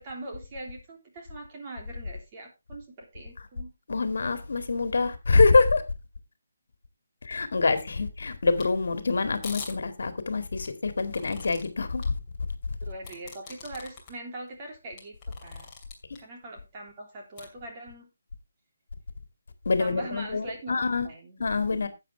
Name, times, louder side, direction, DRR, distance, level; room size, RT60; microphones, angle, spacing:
voice 1, 0.0-3.7 12.8-15.7 16.2-18.1 19.8-21.8, right 2 dB, 25° right, 3.2 m, -42 dB
voice 2, 3.9-5.8 7.3-12.1 19.7-21.1 21.4-21.9, left 3 dB, 65° left, 2.0 m, -25 dB
sound 1, 8.6-8.7 9.4-9.7 10.7-11.7 12.0-12.1 13.0-14.1 14.5-14.6 15.0-16.2 17.4-17.5, left 4 dB, 15° left, 2.6 m, -42 dB
12.0 x 8.5 x 3.3 m
hypercardioid pair, 170°, 0 cm